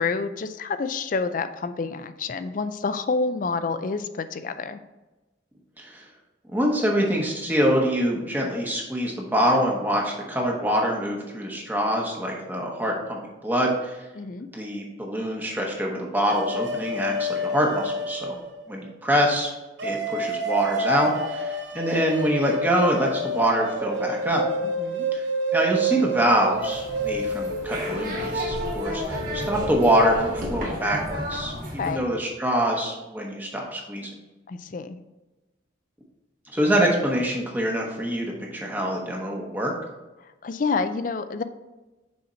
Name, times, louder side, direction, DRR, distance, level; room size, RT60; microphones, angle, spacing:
voice 1, 0.0-4.8 14.2-14.5 24.6-25.1 31.8-32.0 34.5-35.0 40.2-41.4, left 4 dB, 40° left, 11 dB, 0.4 m, -28 dB
voice 2, 6.5-14.0 14.5-18.4 18.7-19.5 19.8-24.5 25.1-25.2 25.5-34.1 36.5-39.7, equal, 10° right, -1 dB, 0.9 m, -25 dB
sound 1, 16.3-18.8 19.8-30.6, right 1 dB, 65° right, 0.7 m, -29 dB
sound 2, 26.5-32.0, equal, 40° right, 1.5 m, -32 dB
6.4 x 4.3 x 4.3 m, 1.1 s
head